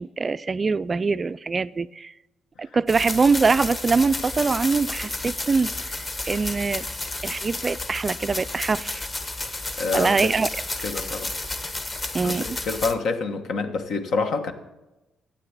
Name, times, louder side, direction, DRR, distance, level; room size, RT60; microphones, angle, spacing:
voice 1, 0.0-2.1 2.6-6.9 7.2-9.1 9.9-10.5 12.1-12.5, right 4 dB, 30° right, 0.3 m, -23 dB
sound 1, 2.9-12.9, left 2 dB, 25° left, 1.3 m, -32 dB
voice 2, 9.8-10.3 10.8-11.3 12.2-14.5, left 4 dB, 70° left, 1.4 m, -27 dB
12.0 x 8.7 x 8.2 m
cardioid pair, 90°, 0 cm